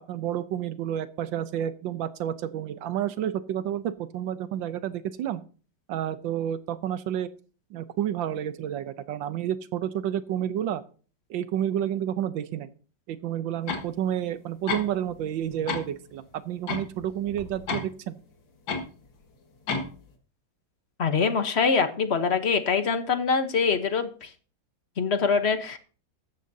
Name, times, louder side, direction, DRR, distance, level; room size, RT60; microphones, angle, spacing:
voice 1, 0.1-5.4 5.9-7.3 7.7-10.8 11.3-12.7 13.1-18.2, right 10 dB, 85° right, 13 dB, 1.5 m, -30 dB
sound 1, 13.7-13.9 14.7-15.2 15.5-15.9 16.7-17.8 18.7-18.9 19.7-20.0, left 4 dB, 85° left, 2.5 m, -31 dB
voice 2, 21.0-24.3 25.0-25.8, left 5 dB, 45° left, 9 dB, 1.0 m, -24 dB
14.0 x 13.0 x 2.7 m, 0.39 s
omnidirectional pair, 2.0 m